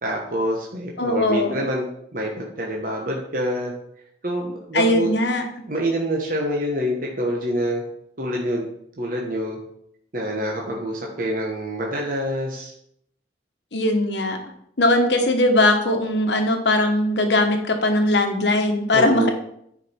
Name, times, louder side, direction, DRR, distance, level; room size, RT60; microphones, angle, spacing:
voice 1, 0.0-1.8 2.1-3.7 4.2-5.1 5.7-7.8 8.2-8.7 9.0-9.6 10.1-12.7 18.9-19.3, equal, 50° right, -1 dB, 1.2 m, -26 dB
voice 2, 1.0-1.6 4.7-5.4 13.7-14.4 14.8-19.3, left 1 dB, 80° left, 5 dB, 1.1 m, -20 dB
9.8 x 5.1 x 4.4 m, 0.72 s
head